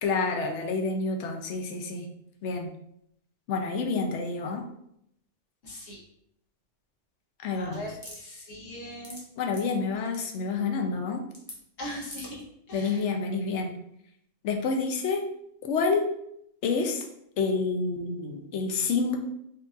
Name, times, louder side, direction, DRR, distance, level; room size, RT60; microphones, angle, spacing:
voice 1, 0.0-2.1 2.4-2.7 3.5-4.6 7.4-7.8 9.4-11.2 12.7-13.7 14.4-15.2 15.6-16.1 16.6-17.1 17.4-19.2, left 4 dB, 70° left, 4 dB, 0.9 m, -28 dB
voice 2, 5.6-6.0 7.5-9.2 11.8-13.0, left 1 dB, 90° left, -4 dB, 1.4 m, -40 dB
sound 1, 8.0-8.2 8.8-9.2 9.5-9.7 10.1-10.2 11.3-11.6 12.0-12.4, left 1 dB, 15° left, 0.7 m, -42 dB
4.6 x 2.3 x 2.5 m, 0.75 s
omnidirectional pair, 1.3 m